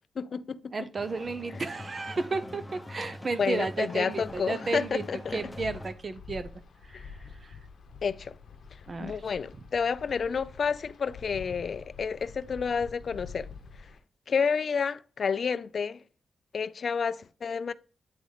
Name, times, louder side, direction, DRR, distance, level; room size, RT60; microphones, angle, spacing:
voice 1, 0.2-0.9 3.4-5.4 6.9-7.0 8.0-8.3 9.0-13.5 14.3-16.0 16.5-17.7, left 6 dB, 60° left, 0.3 m, -30 dB
voice 2, 0.7-5.0 5.3-6.5 6.9-7.1 7.4-7.5 8.9-9.1, right 3 dB, 40° right, 0.6 m, -32 dB
sound 1, 1.0-5.9, left 1 dB, 10° left, 0.8 m, -43 dB
Wind, 4.2-14.0, left 5 dB, 75° left, 0.8 m, -47 dB
9.3 x 3.9 x 3.2 m
cardioid pair, 100°, 0 cm